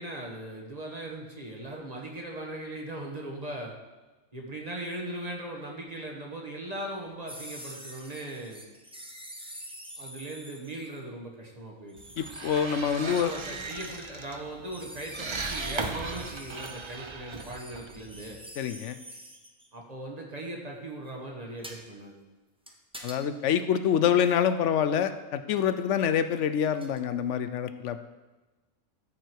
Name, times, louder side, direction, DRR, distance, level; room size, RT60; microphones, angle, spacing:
voice 1, 0.0-3.7 4.3-8.6 10.0-12.0 13.0-18.4 19.7-22.2, right 1 dB, 30° right, 0 dB, 1.4 m, -39 dB
sound 1, 7.3-11.0 11.9-14.0 14.7-19.7 21.6-21.8 22.7-23.2 24.8-24.9 26.6-27.0, equal, 5° right, 0.6 m, -46 dB
sound 2, 12.0-18.5, right 3 dB, 45° right, 0.3 m, -38 dB
voice 2, 12.2-13.3 18.6-19.0 23.0-28.1, left 8 dB, 65° left, 10 dB, 0.9 m, -26 dB
13.5 x 4.9 x 4.6 m, 1.2 s
omnidirectional pair, 1.4 m